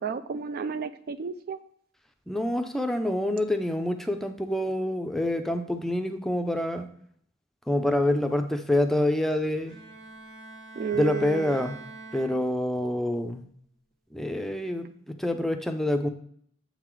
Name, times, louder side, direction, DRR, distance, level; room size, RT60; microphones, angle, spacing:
voice 1, 0.0-1.6 10.8-11.6, right 6 dB, 55° right, 12 dB, 0.3 m, -32 dB
voice 2, 2.3-6.9 7.7-9.7 10.9-11.8 12.1-13.4 14.1-16.1, left 1 dB, ahead, 5 dB, 0.5 m, -27 dB
Bowed string instrument, 9.7-12.8, right 3 dB, 80° right, 1.4 m, -44 dB
7.4 x 4.0 x 4.6 m, 0.63 s
head